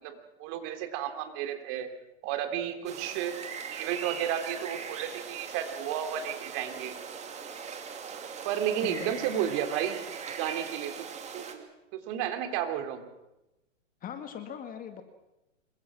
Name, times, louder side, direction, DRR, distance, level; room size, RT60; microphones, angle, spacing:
voice 1, 0.0-1.9 2.2-3.4 3.7-6.9 8.4-10.0 10.3-11.1 11.3-11.6 11.9-13.0, right 10 dB, 40° right, 7 dB, 3.4 m, -32 dB
sound 1, 2.9-11.5, right 6 dB, 15° right, 2.6 m, -40 dB
voice 2, 8.8-9.2 14.0-15.0, left 8 dB, 20° left, 7 dB, 2.0 m, -39 dB
27.0 x 23.5 x 6.2 m, 0.95 s
hypercardioid pair, 135°, 39 cm